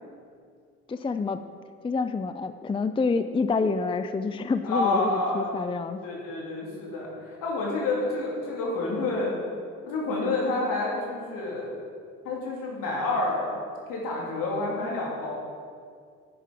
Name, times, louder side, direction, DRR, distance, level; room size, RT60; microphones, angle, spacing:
voice 1, 0.9-1.4 1.8-6.0, left 4 dB, 15° left, 11 dB, 0.4 m, -27 dB
voice 2, 4.6-5.5 6.0-7.1 7.4-9.4 9.8-11.7 12.2-13.5 13.9-15.4, left 2 dB, 70° left, -3 dB, 2.7 m, -28 dB
10.5 x 6.3 x 5.2 m, 2.2 s
hypercardioid pair, 50°, 35 cm